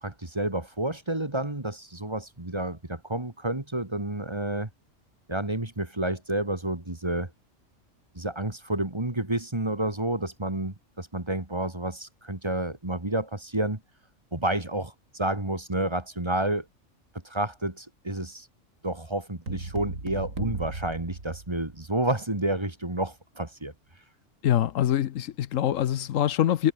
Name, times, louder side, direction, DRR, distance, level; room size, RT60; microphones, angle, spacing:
voice 1, 0.0-4.7 5.3-7.3 8.1-13.8 14.3-16.7 17.2-18.5 18.8-23.7, right 1 dB, 20° right, 2.1 m, -30 dB
sound 1, 19.5-22.0, right 3 dB, 80° right, 4.5 m, -36 dB
voice 2, 24.4-26.7, left 11 dB, 80° left, 1.1 m, -24 dB
omnidirectional pair, 1.3 m